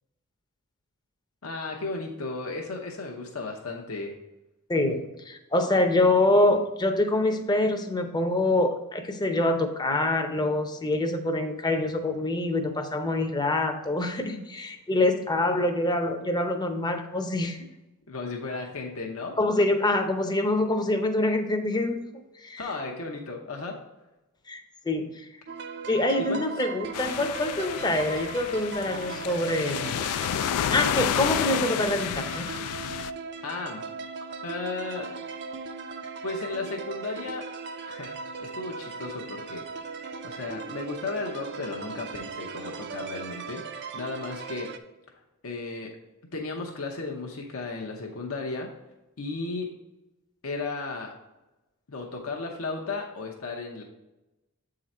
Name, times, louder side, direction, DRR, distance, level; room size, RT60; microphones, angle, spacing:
voice 1, 1.4-4.1 18.1-19.4 22.6-23.8 26.2-26.6 33.4-33.8 34.4-35.1 36.2-37.5 37.9-39.7 40.2-43.6 43.9-44.7 45.4-45.9 46.3-48.7 49.2-49.7 50.4-51.1 51.9-53.8, left 3 dB, 70° left, 0 dB, 0.8 m, -34 dB
voice 2, 4.7-17.6 19.4-22.0 22.4-22.6 24.5-25.3 25.9-30.0 30.7-32.5, left 2 dB, 20° left, 6 dB, 0.6 m, -25 dB
sound 1, 25.5-44.8, right 5 dB, 50° right, 0.5 m, -38 dB
sound 2, 26.9-33.1, left 10 dB, 90° left, 0.3 m, -30 dB
7.8 x 3.8 x 4.2 m, 1.0 s
head